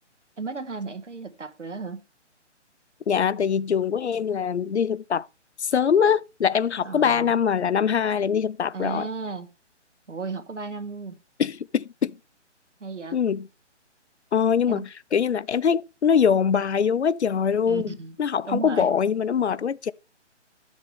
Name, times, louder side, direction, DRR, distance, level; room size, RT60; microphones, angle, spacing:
voice 1, 0.4-2.0 6.8-7.3 8.7-9.5 10.1-11.2 12.8-13.2 14.7-14.9 17.7-18.1 18.5-18.9, right 4 dB, 80° right, 1.4 m, -34 dB
voice 2, 3.1-5.3 5.6-9.1 11.4-12.2 13.1-13.5 14.3-17.9 18.2-19.9, left 7 dB, 65° left, 0.5 m, -23 dB
11.5 x 7.1 x 3.4 m
figure-of-eight pair, 140°, 36 cm